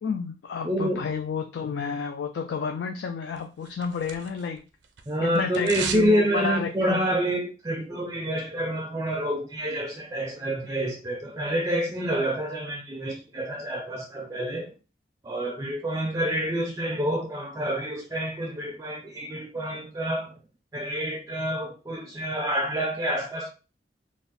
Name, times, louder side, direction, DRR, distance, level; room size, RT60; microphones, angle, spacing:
voice 1, 0.0-4.6 5.2-7.0, left 5 dB, 75° left, 0.3 m, -31 dB
voice 2, 0.6-1.0 5.1-14.7 15.2-20.4 20.7-23.5, right 1 dB, 20° right, 0.4 m, -28 dB
sound 1, 3.4-4.6 4.8-6.1 6.4-6.5, right 6 dB, 90° right, 0.5 m, -35 dB
2.5 x 2.1 x 3.9 m
head